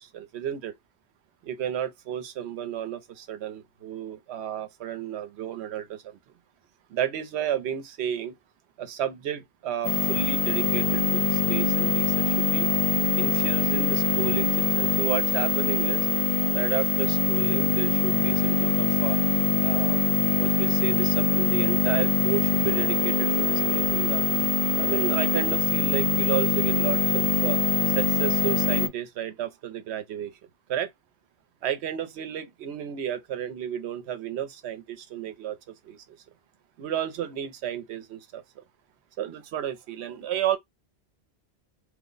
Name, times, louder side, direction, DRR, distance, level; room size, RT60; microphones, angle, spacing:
voice 1, 0.1-0.7 1.4-6.2 6.9-8.3 8.8-12.7 13.2-16.1 16.5-19.2 19.6-20.0 20.4-24.2 24.8-27.6 28.0-30.3 30.7-30.9 31.6-35.6 35.9-36.0 36.8-38.4 39.2-40.6, right 10 dB, 80° right, 0.9 m, -32 dB
sound 1, 9.8-28.9, left 4 dB, 40° left, 0.7 m, -23 dB
3.0 x 2.1 x 3.7 m
omnidirectional pair, 1.1 m